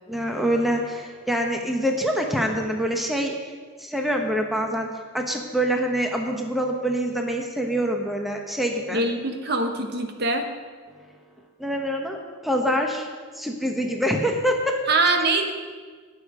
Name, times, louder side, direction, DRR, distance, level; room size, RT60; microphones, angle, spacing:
voice 1, 0.1-3.3 3.8-4.9 5.1-9.0 11.6-13.1 13.3-14.8, equal, ahead, 2 dB, 1.1 m, -25 dB
voice 2, 8.9-10.5 14.9-15.5, right 2 dB, 55° right, 5 dB, 1.1 m, -23 dB
18.5 x 6.7 x 5.0 m, 1.5 s
head